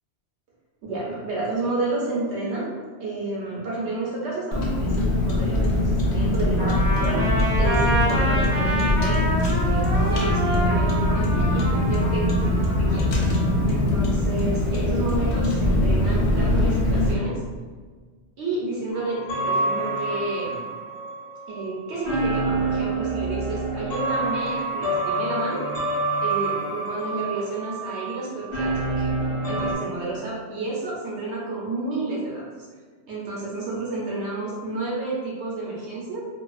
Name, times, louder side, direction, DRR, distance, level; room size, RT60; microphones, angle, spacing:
voice 1, 0.8-2.7 3.0-7.2 7.6-13.1 13.7-17.4 18.4-20.6 21.5-25.7 26.2-29.1 29.5-32.6 33.1-36.2, right 2 dB, 75° right, -5 dB, 0.9 m, -30 dB
Car, 4.5-17.1, left 1 dB, 90° left, 0.9 m, -22 dB
Trumpet, 6.6-13.7, right 1 dB, 20° right, 0.7 m, -28 dB
sound 1, 18.9-29.7, right 2 dB, 55° left, 1.0 m, -27 dB
2.5 x 2.2 x 2.3 m, 1.5 s
omnidirectional pair, 1.2 m